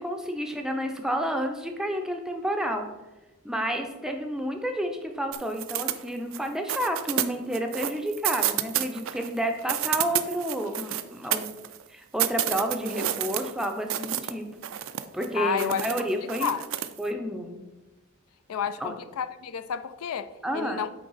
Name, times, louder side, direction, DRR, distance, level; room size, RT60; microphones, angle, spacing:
voice 1, 0.0-2.9 3.4-11.4 11.9-14.5 15.1-16.5 17.0-17.6 18.8-19.0 20.4-20.8, equal, 5° right, 3 dB, 0.5 m, -30 dB
sound 1, 5.3-6.4 6.7-9.3 9.6-11.8 12.2-14.3 14.6-15.3 15.6-17.0, right 12 dB, 60° right, 0.4 m, -29 dB
voice 2, 15.3-15.9 16.4-16.6 18.5-20.3 20.5-20.9, left 8 dB, 75° left, 12 dB, 0.4 m, -30 dB
8.6 x 3.4 x 4.0 m, 1.1 s
head